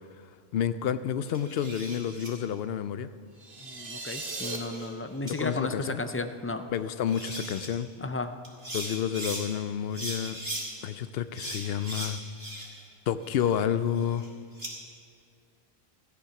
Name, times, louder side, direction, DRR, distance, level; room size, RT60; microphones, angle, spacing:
voice 1, 0.5-3.1 5.2-6.0 6.7-7.9 8.7-10.4 10.8-12.2 13.1-14.3, left 9 dB, 75° left, 13 dB, 0.8 m, -30 dB
sound 1, 1.3-2.3 3.9-4.9 5.3-5.4 6.7-6.8 7.1-7.7 8.4-9.4 9.9-10.7 11.3-12.9 13.2-14.7, right 1 dB, 40° right, 2.4 m, -39 dB
sound 2, 3.4-4.6, right 3 dB, 60° right, 1.6 m, -37 dB
voice 2, 3.6-6.7 8.0-8.3, left 2 dB, 20° left, 8 dB, 0.3 m, -34 dB
14.5 x 10.0 x 5.9 m, 2.2 s
omnidirectional pair, 1.1 m